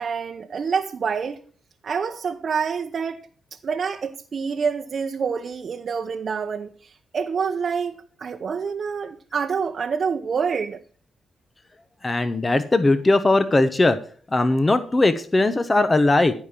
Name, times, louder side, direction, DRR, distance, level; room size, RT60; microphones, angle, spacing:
voice 1, 0.0-1.4 1.8-3.2 3.5-10.8, right 6 dB, 55° right, 0.9 m, -27 dB
voice 2, 12.0-14.0 14.3-16.3, left 2 dB, 25° left, 1.0 m, -19 dB
14.5 x 5.2 x 7.3 m
cardioid pair, 70°, 0 cm